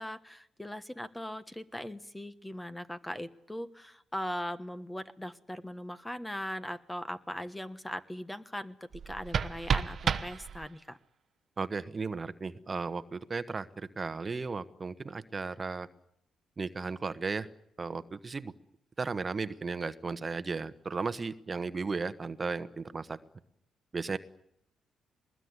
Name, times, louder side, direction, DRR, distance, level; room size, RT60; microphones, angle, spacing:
voice 1, 0.0-11.0, left 1 dB, 10° left, 12 dB, 1.3 m, -40 dB
sound 1, 8.9-10.9, right 6 dB, 50° right, 1.1 m, -32 dB
voice 2, 11.6-15.9 16.6-17.5 17.8-18.5 19.0-23.2 23.9-24.2, right 4 dB, 30° right, 12 dB, 1.2 m, -35 dB
22.5 x 20.5 x 9.7 m, 0.74 s
cardioid pair, 90°, 0 cm